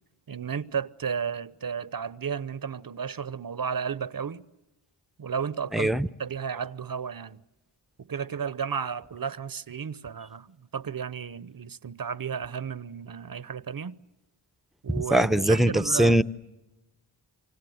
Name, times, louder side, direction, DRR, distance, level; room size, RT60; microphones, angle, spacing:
voice 1, 0.3-4.4 5.2-5.9 6.2-7.4 8.0-14.0 14.8-16.2, right 6 dB, 45° right, 0.9 m, -33 dB
voice 2, 5.7-6.1 14.9-16.2, right 1 dB, ahead, 0.9 m, -21 dB
28.0 x 25.0 x 7.9 m
cardioid pair, 40°, 47 cm